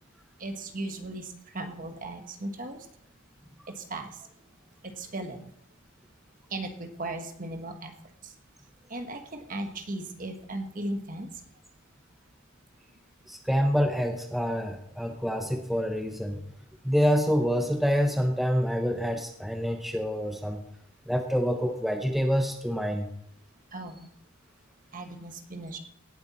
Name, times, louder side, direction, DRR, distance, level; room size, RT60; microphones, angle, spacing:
voice 1, 0.4-2.8 3.8-4.1 4.8-5.4 6.5-7.9 8.9-11.3 23.7-24.1 24.9-25.8, right 2 dB, 40° right, 6 dB, 1.5 m, -36 dB
voice 2, 13.3-16.4 16.8-20.6 21.1-23.1, equal, ahead, 4 dB, 0.8 m, -27 dB
17.5 x 7.9 x 4.3 m, 0.72 s
head